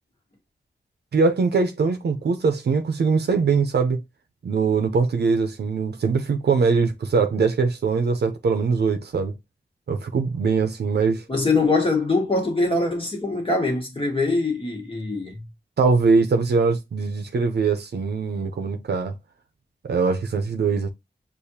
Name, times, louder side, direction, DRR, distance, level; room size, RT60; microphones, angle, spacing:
voice 1, 1.1-4.0 4.4-9.3 9.9-11.2 15.8-19.1 19.8-20.9, right 4 dB, 70° right, 0.6 m, -22 dB
voice 2, 11.3-15.4, left 3 dB, 30° left, 1.5 m, -23 dB
6.6 x 2.5 x 2.7 m
wide cardioid pair, 120°, 17 cm